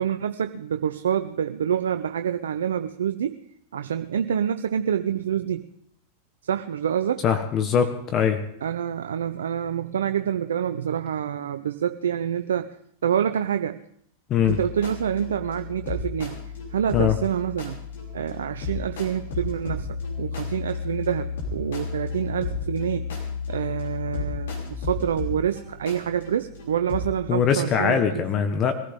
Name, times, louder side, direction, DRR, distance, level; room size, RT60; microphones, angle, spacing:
voice 1, 0.0-3.3 3.7-5.7 6.4-7.3 8.6-12.7 13.0-13.8 14.5-16.4 16.7-17.8 18.1-23.1 23.5-28.2, right 9 dB, 75° right, 9 dB, 0.6 m, -27 dB
voice 2, 7.2-8.4 14.3-14.6 16.9-17.2 27.3-28.8, left 7 dB, 35° left, 8 dB, 1.3 m, -22 dB
sound 1, 14.4-27.2, left 5 dB, 70° left, 5.9 m, -33 dB
23.0 x 15.0 x 3.7 m, 0.69 s
hypercardioid pair, 95°, 0 cm